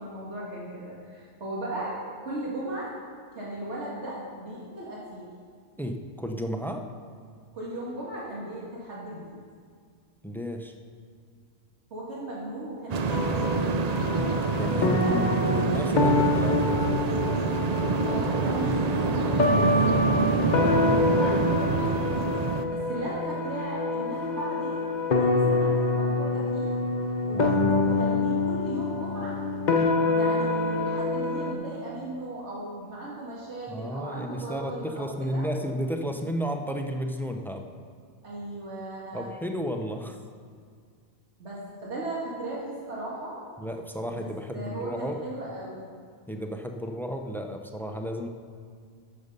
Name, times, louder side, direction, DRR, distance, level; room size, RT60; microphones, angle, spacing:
voice 1, 0.0-2.9 3.3-5.3 7.5-9.4 11.9-13.5 14.0-14.3 17.9-22.1 22.7-26.7 27.3-29.4 30.1-35.5 38.2-39.3 41.4-43.4 44.1-44.2 44.5-45.9, right 1 dB, 90° right, -5 dB, 2.1 m, -37 dB
voice 2, 5.8-6.9 10.2-10.7 14.1-17.0 27.3-28.2 33.7-37.7 39.1-40.2 43.6-45.2 46.3-48.3, equal, ahead, 4 dB, 0.5 m, -33 dB
sound 1, 12.9-22.6, right 5 dB, 50° right, 0.5 m, -27 dB
sound 2, 13.1-31.5, left 2 dB, 45° left, 0.9 m, -26 dB
13.0 x 6.6 x 5.4 m, 2.1 s
omnidirectional pair, 1.1 m